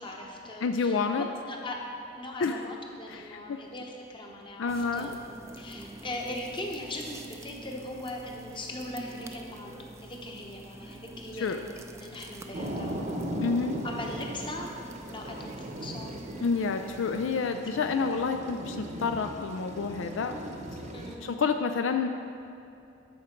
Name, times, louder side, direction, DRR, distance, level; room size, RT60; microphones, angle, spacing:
voice 1, 0.0-1.8 2.1-5.2 5.6-13.1 13.8-14.7 15.1-16.1 17.9-18.0 20.9-21.3, left 1 dB, 25° left, 0 dB, 1.0 m, -40 dB
voice 2, 0.6-1.3 2.4-2.6 3.1-3.6 4.6-5.1 11.3-11.6 13.4-13.8 16.4-20.4 21.2-22.1, left 5 dB, 75° left, 6 dB, 0.4 m, -29 dB
sound 1, 4.7-17.4, right 1 dB, 15° right, 0.4 m, -46 dB
sound 2, 12.5-21.1, right 1 dB, 40° right, 0.8 m, -38 dB
13.0 x 5.1 x 4.4 m, 2.7 s
head